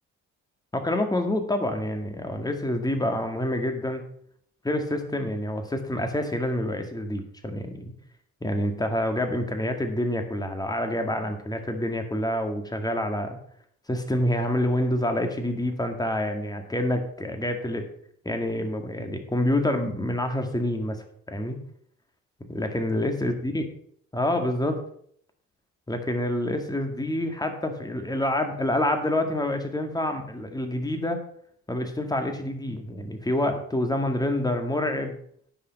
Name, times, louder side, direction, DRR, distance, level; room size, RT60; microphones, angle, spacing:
voice 1, 0.7-4.0 4.6-7.8 8.4-13.4 13.9-17.9 18.3-21.6 22.5-23.6 24.1-24.8 25.9-31.2 31.7-35.1, left 1 dB, 15° left, 5 dB, 2.0 m, -27 dB
10.0 x 5.7 x 6.6 m, 0.64 s
cardioid pair, 90°, 30 cm